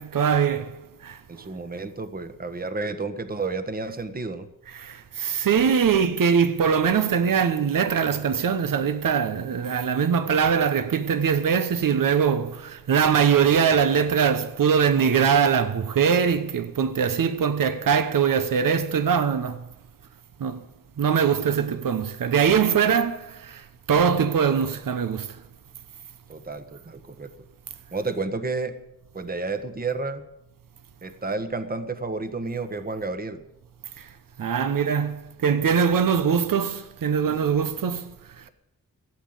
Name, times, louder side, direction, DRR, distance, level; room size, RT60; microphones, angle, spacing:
voice 1, 0.0-1.2 4.7-19.6 20.4-20.6 21.0-25.4 34.0-34.1 34.4-38.5, right 7 dB, 75° right, 1.0 m, -22 dB
voice 2, 1.3-4.5 26.3-27.3 27.9-28.7 29.1-30.2 31.0-33.4, right 3 dB, 25° right, 1.2 m, -31 dB
16.0 x 8.5 x 7.9 m
wide cardioid pair, 95°, 33 cm